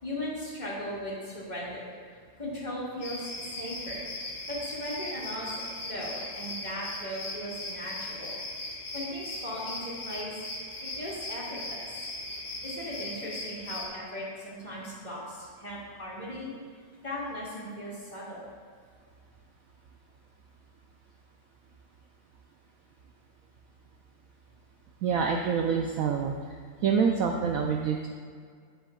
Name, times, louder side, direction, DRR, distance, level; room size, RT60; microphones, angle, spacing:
voice 1, 0.0-1.9 2.4-4.0 4.5-8.4 8.9-10.4 10.8-12.0 12.6-16.5 17.0-18.4, equal, 25° left, -8 dB, 2.2 m, -38 dB
sound 1, 3.0-13.9, left 2 dB, 70° left, 1.8 m, -38 dB
voice 2, 25.0-26.3 26.8-28.1, right 6 dB, 70° right, 2 dB, 0.8 m, -26 dB
10.5 x 7.8 x 2.3 m, 2.1 s
omnidirectional pair, 1.8 m